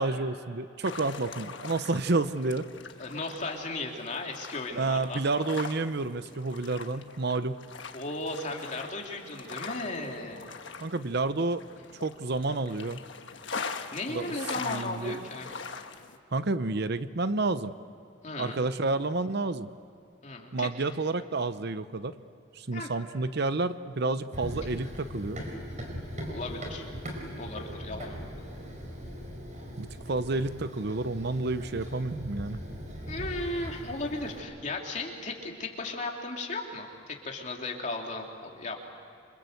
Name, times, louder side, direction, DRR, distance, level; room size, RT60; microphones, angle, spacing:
voice 1, 0.0-2.7 4.7-7.6 10.8-11.6 11.9-13.0 14.1-14.3 14.7-15.2 16.3-17.7 18.4-19.7 20.5-22.1 22.5-25.4 29.8-32.6, right 3 dB, 55° right, 13 dB, 0.7 m, -30 dB
sound 1, 0.8-16.2, left 5 dB, 60° left, 1.4 m, -42 dB
voice 2, 3.0-5.2 7.9-10.5 13.9-15.5 18.2-18.6 20.2-20.7 22.7-22.9 26.3-26.9 27.4-28.3 33.1-38.8, left 2 dB, 35° left, 1 dB, 3.1 m, -36 dB
Run, 24.3-34.4, equal, 35° right, 4.8 m, -40 dB
28.0 x 25.5 x 7.9 m, 2.6 s
head